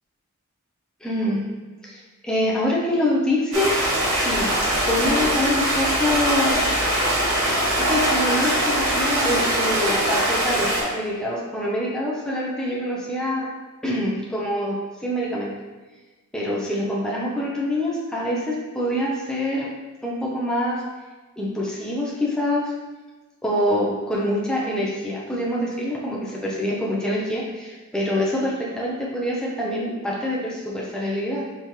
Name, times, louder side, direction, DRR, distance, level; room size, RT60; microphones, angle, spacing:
voice 1, 1.0-1.4 1.8-4.5 4.9-6.7 7.8-13.5 13.8-15.5 16.3-19.7 20.0-20.8 21.4-22.7 23.4-31.4, left 1 dB, 5° left, -4 dB, 0.6 m, -25 dB
Stream, 3.5-10.8, right 1 dB, 65° right, 1.1 m, -22 dB
4.2 x 3.7 x 3.1 m, 1.2 s
head